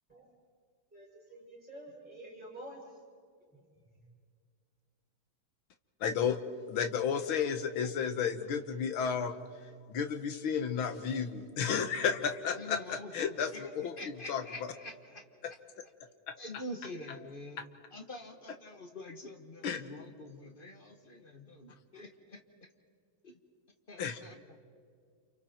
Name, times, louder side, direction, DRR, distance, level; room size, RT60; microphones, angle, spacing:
voice 1, 0.9-2.8, right 1 dB, 5° right, -4 dB, 7.3 m, -49 dB
voice 2, 6.0-6.4 6.7-9.4 9.9-14.7 15.4-15.5 19.6-19.8 24.0-24.2, left 7 dB, 80° left, 8 dB, 2.0 m, -32 dB
voice 3, 12.5-13.6 14.0-15.2 16.4-17.6 17.9-22.4 23.2-23.3 23.9-24.6, left 1 dB, 30° left, 4 dB, 1.6 m, -46 dB
29.5 x 28.0 x 4.5 m, 2.1 s
omnidirectional pair, 2.2 m